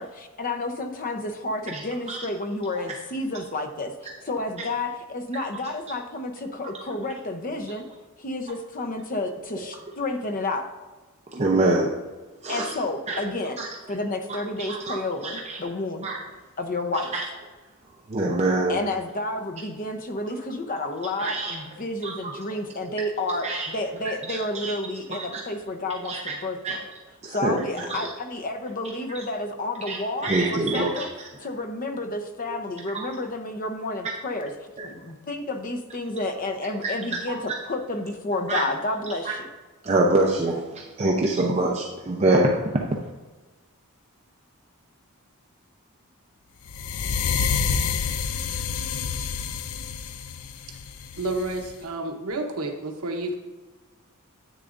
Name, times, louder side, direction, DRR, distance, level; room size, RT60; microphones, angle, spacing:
voice 1, 0.0-3.9 4.2-7.8 8.2-10.7 12.5-13.6 13.9-16.1 16.6-17.1 18.7-26.8 27.3-31.1 31.4-34.5 34.8-39.5, left 2 dB, 40° left, 6 dB, 0.8 m, -30 dB
voice 2, 11.3-12.0 12.4-12.7 13.1-13.2 13.6-13.7 14.6-15.0 15.2-15.6 16.0-16.2 17.1-17.2 18.1-18.8 21.2-21.6 22.0-22.1 23.4-23.7 24.3-24.7 25.1-25.4 26.1-26.3 26.6-26.8 27.2-28.1 29.1-29.2 29.9-31.3 32.9-33.1 34.8-34.9 36.8-37.2 38.5-38.6 39.2-39.3 39.8-43.1, right 2 dB, 30° right, -1 dB, 0.6 m, -25 dB
sound 1, 46.7-51.7, left 6 dB, 75° left, 0.5 m, -28 dB
voice 3, 51.2-53.3, right 2 dB, 85° right, 3 dB, 0.9 m, -30 dB
10.0 x 8.3 x 2.6 m, 1.2 s
head